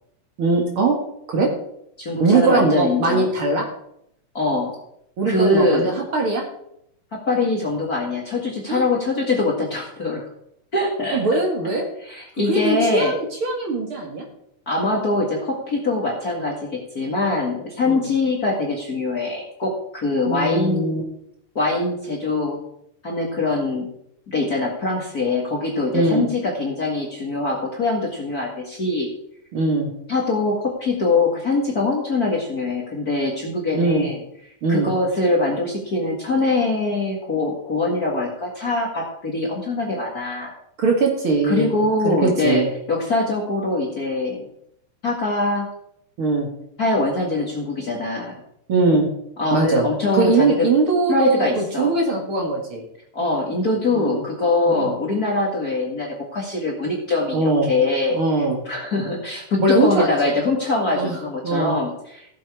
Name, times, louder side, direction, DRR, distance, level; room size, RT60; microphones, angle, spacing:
voice 1, 0.4-1.0 1.3-1.5 2.2-3.6 5.2-6.4 8.7-8.8 11.1-11.8 12.5-14.3 17.8-18.0 20.3-21.0 25.9-26.2 29.5-29.9 33.7-34.1 34.6-34.9 40.8-41.8 42.0-42.7 46.2-46.5 48.7-49.1 49.5-49.9 50.1-52.8 53.9-54.2 54.7-54.9 57.3-57.7 58.1-58.6 59.6-60.3 60.9-61.2 61.4-61.8, right 3 dB, 45° right, 1 dB, 2.5 m, -20 dB
voice 2, 2.0-3.3 4.3-4.7 5.3-5.9 7.1-10.3 10.7-11.4 12.0-13.1 14.6-21.0 21.5-22.6 23.0-23.9 24.3-29.1 30.1-34.2 34.7-40.5 41.4-44.5 45.0-45.7 46.8-48.3 49.4-50.7 51.1-51.9 53.1-58.2 58.6-62.3, left 2 dB, 35° left, -2 dB, 1.8 m, -23 dB
15.0 x 7.6 x 4.8 m, 0.75 s
omnidirectional pair, 3.5 m